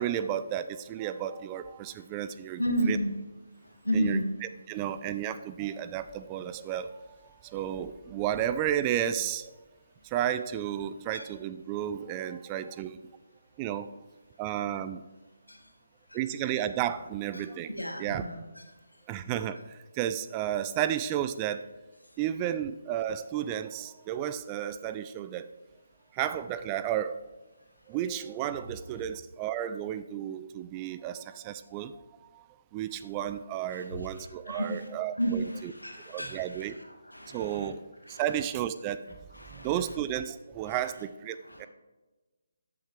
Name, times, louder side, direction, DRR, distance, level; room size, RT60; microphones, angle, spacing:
voice 1, 0.0-3.0 3.9-9.5 10.0-13.0 13.6-13.9 14.4-15.0 16.1-18.3 19.1-21.6 22.2-25.5 26.1-27.2 27.9-32.0 32.3-32.5 32.7-35.7 36.1-36.8 37.3-37.8 38.1-39.0 39.5-41.7, right 10 dB, 20° right, 12 dB, 0.3 m, -33 dB
voice 2, 2.6-3.1 3.8-4.3 11.1-11.3 15.5-15.6 16.1-16.2 17.3-17.4 17.7-18.6 33.8-33.9 34.2-34.9 35.2-36.7 37.1-37.7 38.1-38.2 39.4-39.7 40.7-40.8 41.5-41.7, right 1 dB, 80° left, 3 dB, 1.7 m, -32 dB
13.5 x 7.2 x 3.3 m, 1.2 s
figure-of-eight pair, 145°, 0 cm